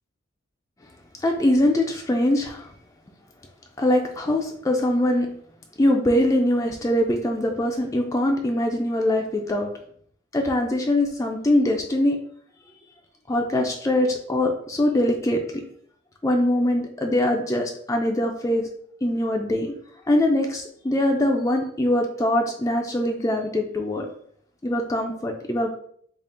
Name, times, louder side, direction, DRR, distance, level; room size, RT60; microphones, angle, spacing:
voice 1, 1.2-2.7 3.8-5.3 5.8-9.7 10.3-12.2 13.3-15.6 16.2-18.7 19.0-19.7 20.1-24.1 24.6-25.8, left 1 dB, 15° left, 1 dB, 0.3 m, -22 dB
3.5 x 2.4 x 3.8 m, 0.62 s
head